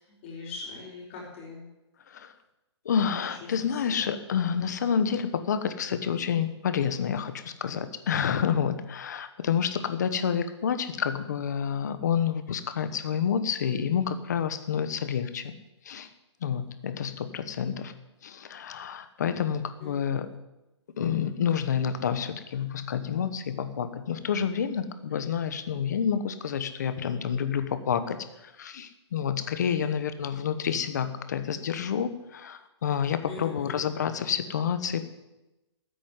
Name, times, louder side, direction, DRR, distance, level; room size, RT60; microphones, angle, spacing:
voice 1, 0.1-1.6 3.2-4.0 19.8-20.0 29.7-29.9 33.3-33.8, left 3 dB, 20° left, -8 dB, 4.0 m, -42 dB
voice 2, 2.8-15.5 15.8-16.1 16.4-17.9 18.2-20.3 21.0-28.2 28.6-35.0, left 7 dB, 40° left, 11 dB, 1.1 m, -29 dB
13.5 x 8.4 x 9.6 m, 0.98 s
hypercardioid pair, 180°, 15 cm